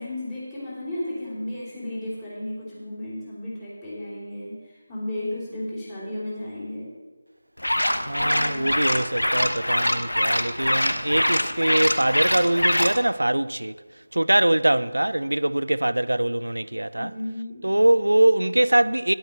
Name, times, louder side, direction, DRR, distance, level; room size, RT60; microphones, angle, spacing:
voice 1, 0.0-6.9 8.2-8.7 17.0-17.7, left 1 dB, 20° left, 3.4 m, -34 dB
sound 1, 7.6-13.0, left 1 dB, 85° left, 0.9 m, -24 dB
voice 2, 8.1-13.7 14.1-17.1 17.6-19.1, right 1 dB, 85° right, 0.4 m, -22 dB
10.0 x 8.0 x 5.5 m
figure-of-eight pair, 160°, 0 cm